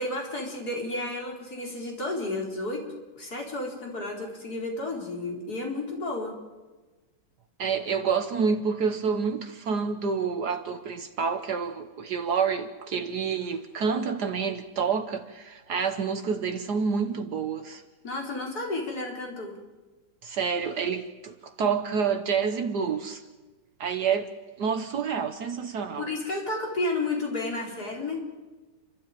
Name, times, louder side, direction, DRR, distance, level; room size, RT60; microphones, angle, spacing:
voice 1, 0.0-2.8 3.2-6.3 18.0-19.6 26.0-28.2, left 2 dB, 55° left, 4.8 m, -32 dB
voice 2, 7.6-17.8 20.2-23.2 23.8-24.3 24.6-26.1, right 6 dB, 65° right, 1.6 m, -28 dB
30.0 x 13.0 x 9.0 m
omnidirectional pair, 2.0 m